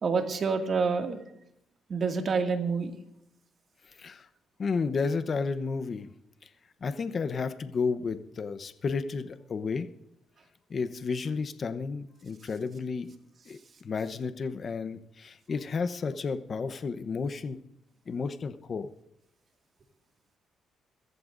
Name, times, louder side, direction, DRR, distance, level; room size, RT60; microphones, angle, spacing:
voice 1, 0.0-1.2 1.9-3.0, right 5 dB, 50° right, 4 dB, 2.2 m, -27 dB
voice 2, 4.6-6.1 6.8-9.9 10.7-13.1 13.5-17.6 18.1-18.9, left 5 dB, 45° left, 10 dB, 0.9 m, -32 dB
22.0 x 14.5 x 2.6 m, 0.75 s
cardioid pair, 90°, 0 cm